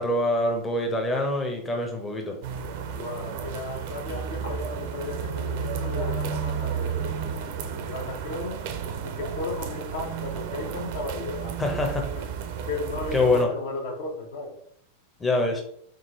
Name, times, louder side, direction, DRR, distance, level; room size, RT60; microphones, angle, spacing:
voice 1, 0.0-2.4 11.6-12.1 13.1-13.5 15.2-15.6, left 2 dB, 10° left, 0.7 m, -24 dB
sound 1, 2.4-13.4, right 7 dB, 50° right, 0.5 m, -32 dB
voice 2, 2.9-7.2 7.5-8.6 9.0-11.9 12.1-12.2 12.6-14.6, left 3 dB, 60° left, 1.0 m, -35 dB
3.8 x 3.7 x 3.0 m
figure-of-eight pair, 90°, 0 cm